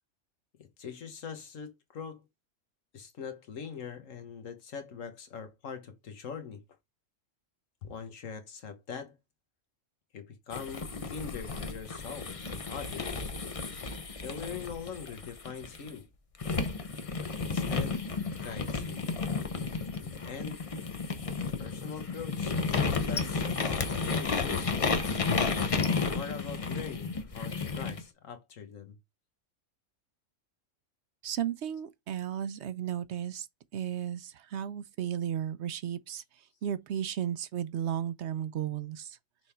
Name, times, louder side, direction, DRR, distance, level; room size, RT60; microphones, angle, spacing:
voice 1, 0.6-2.2 2.9-6.6 7.8-9.2 10.1-13.3 14.1-16.1 17.2-18.1 18.4-19.1 20.0-20.6 21.6-25.2 25.9-29.0, left 6 dB, 85° left, 1.6 m, -42 dB
sound 1, 10.5-15.9 16.4-28.0, left 4 dB, 35° left, 0.7 m, -32 dB
voice 2, 31.2-33.5 33.7-36.2 36.6-39.2, right 10 dB, 65° right, 0.8 m, -34 dB
6.0 x 3.5 x 4.3 m
omnidirectional pair, 1.3 m